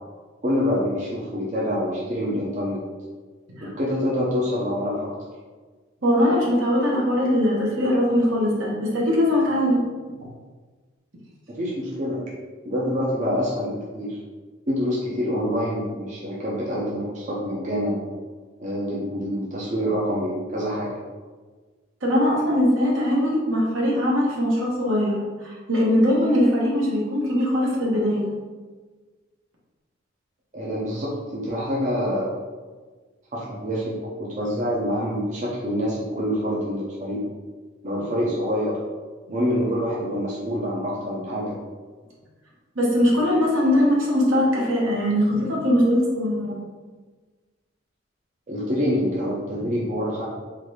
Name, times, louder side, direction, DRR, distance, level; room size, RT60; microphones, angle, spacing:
voice 1, 0.4-2.8 3.6-5.1 11.5-12.2 12.6-14.2 14.7-18.0 18.6-21.0 30.5-32.3 33.3-37.2 37.8-38.8 39.3-41.5 48.5-50.2, equal, 35° right, -5 dB, 0.7 m, -26 dB
voice 2, 6.0-9.8 22.0-28.3 42.7-46.5, equal, 75° right, -4 dB, 1.4 m, -21 dB
3.9 x 2.7 x 4.8 m, 1.4 s
head